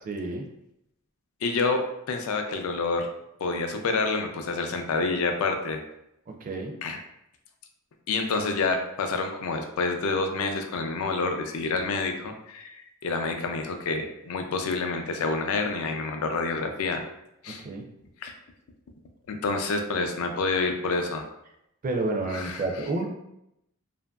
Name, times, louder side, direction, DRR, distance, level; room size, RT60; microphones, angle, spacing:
voice 1, 0.1-0.5 6.4-6.7 17.6-17.8 21.8-23.0, right 2 dB, 40° right, 3 dB, 0.4 m, -29 dB
voice 2, 1.4-3.1 3.4-5.8 6.8-7.0 8.1-17.0 17.4-17.6 18.2-18.3 19.3-21.3 22.3-22.6, left 3 dB, 75° left, 5 dB, 0.4 m, -28 dB
2.8 x 2.5 x 2.2 m, 0.81 s
head